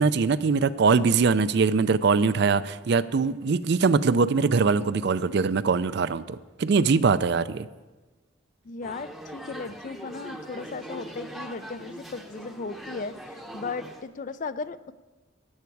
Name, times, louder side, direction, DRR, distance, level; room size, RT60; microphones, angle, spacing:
voice 1, 0.0-7.7, right 4 dB, 55° right, 14 dB, 0.4 m, -22 dB
voice 2, 8.6-14.9, left 4 dB, 40° left, 14 dB, 0.4 m, -36 dB
sound 1, 8.8-14.0, right 1 dB, ahead, 0.8 m, -41 dB
14.0 x 9.5 x 4.7 m, 1.2 s
head